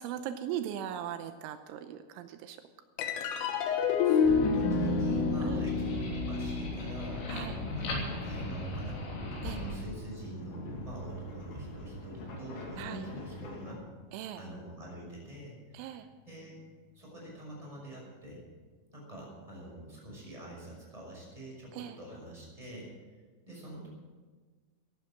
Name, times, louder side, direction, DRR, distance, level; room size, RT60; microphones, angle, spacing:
voice 1, 0.0-2.6 3.0-3.5 5.4-5.6 7.3-7.6 9.4-9.6 12.8-13.1 14.1-14.4 15.7-16.1 21.7-22.0, right 10 dB, 85° right, 9 dB, 3.1 m, -39 dB
sound 1, 3.0-9.7, left 5 dB, 90° left, 3.8 m, -30 dB
voice 2, 4.0-9.0 9.4-13.9 14.3-16.6 16.9-18.4 18.9-22.9 23.5-23.9, right 1 dB, 5° right, -3 dB, 5.6 m, -45 dB
sound 2, 4.2-9.7, left 1 dB, 65° left, 5.4 m, -39 dB
sound 3, 7.1-13.7, equal, 50° left, 3.8 m, -42 dB
15.0 x 11.5 x 7.6 m, 1.4 s
omnidirectional pair, 5.6 m